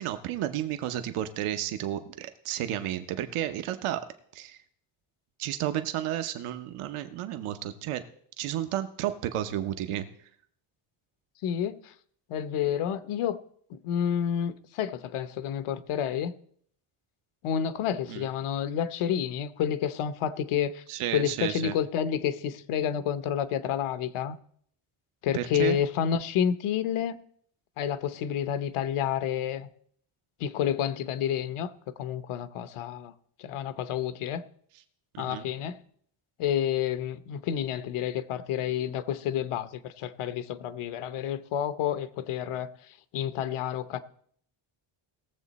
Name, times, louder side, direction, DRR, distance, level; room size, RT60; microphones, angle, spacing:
voice 1, 0.0-4.0 4.3-4.6 5.4-8.0 8.4-10.1 18.1-18.2 20.9-21.8 25.3-25.8 35.1-35.5, right 12 dB, 90° right, 0.9 m, -32 dB
voice 2, 11.4-11.9 12.3-13.4 13.7-16.3 17.4-20.8 21.1-24.4 25.2-27.2 27.8-29.7 30.4-31.7 32.0-33.1 33.4-34.4 35.2-35.8 36.4-44.0, left 9 dB, 80° left, 0.9 m, -29 dB
19.0 x 7.4 x 4.1 m
cardioid pair, 150°, 49 cm